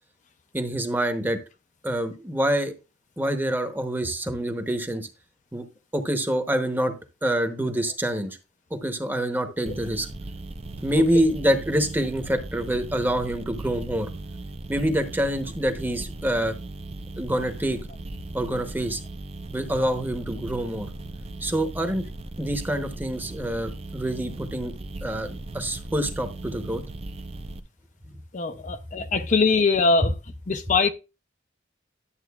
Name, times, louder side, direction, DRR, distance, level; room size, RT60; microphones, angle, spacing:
voice 1, 0.5-1.4 1.8-2.7 3.2-5.1 5.5-5.6 5.9-6.9 7.2-8.4 8.7-10.1 10.8-14.1 14.7-16.6 17.2-17.8 18.3-19.0 19.5-20.9 21.4-22.1 22.4-24.7 25.0-26.8 29.0-29.1, right 1 dB, 10° right, 0.9 m, -26 dB
sound 1, 9.7-27.6, right 2 dB, 30° right, 0.5 m, -38 dB
voice 2, 28.3-30.1 30.5-30.9, left 4 dB, 40° left, 0.5 m, -22 dB
11.0 x 7.5 x 2.3 m
head